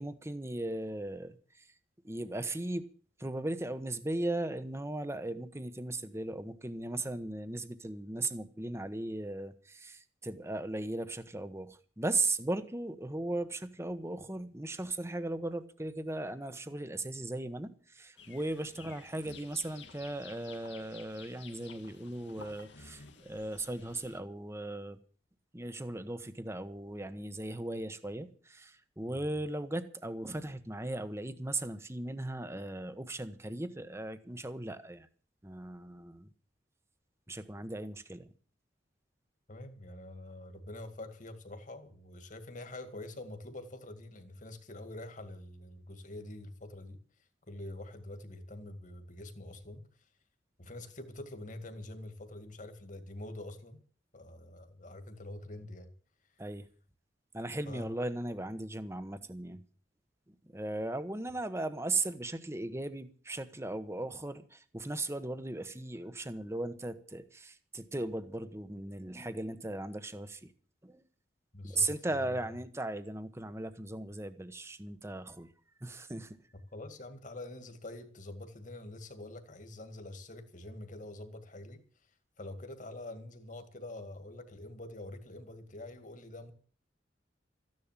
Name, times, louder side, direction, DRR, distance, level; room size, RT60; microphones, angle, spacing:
voice 1, 0.0-1.7 2.0-2.9 3.2-25.0 25.5-35.1 35.4-36.3 37.3-38.3 56.4-56.7 57.3-59.6 60.3-70.5 70.8-71.0 71.6-75.5 75.8-76.4, right 2 dB, 15° right, 1.1 m, -37 dB
sound 1, 18.2-24.2, left 5 dB, 75° left, 2.0 m, -53 dB
voice 2, 39.5-47.0 47.5-49.8 50.6-53.8 54.1-55.9 57.7-57.9 71.5-72.4 76.7-81.8 82.4-86.5, left 1 dB, 45° left, 2.1 m, -45 dB
14.5 x 10.5 x 7.4 m
head